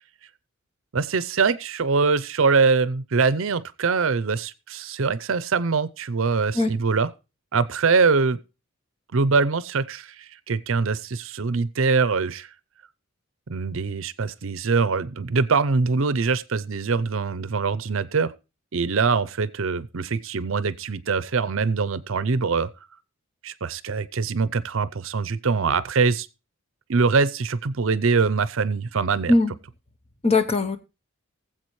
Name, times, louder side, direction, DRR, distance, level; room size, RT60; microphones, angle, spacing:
voice 1, 0.9-7.1 7.5-8.4 9.1-12.5 13.5-18.3 18.7-22.7 23.4-26.3 26.9-29.3, right 4 dB, 60° right, 0.6 m, -23 dB
voice 2, 30.2-30.8, left 2 dB, 25° left, 0.8 m, -19 dB
19.5 x 7.7 x 3.1 m
head